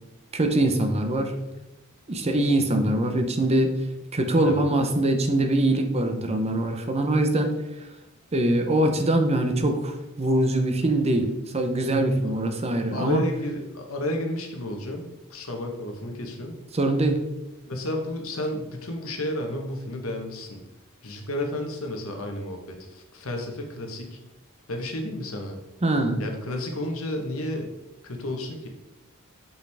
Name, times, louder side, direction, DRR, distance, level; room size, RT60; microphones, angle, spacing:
voice 1, 0.3-1.3 2.1-3.7 4.1-7.5 8.3-11.3 11.5-13.2 16.7-17.2 25.8-26.2, right 1 dB, 30° right, 6 dB, 0.7 m, -23 dB
voice 2, 12.6-16.5 17.7-20.6 21.0-24.2 24.7-25.6 26.2-27.7 28.0-28.7, left 1 dB, 70° left, 3 dB, 1.2 m, -32 dB
6.4 x 5.7 x 3.4 m, 0.94 s
head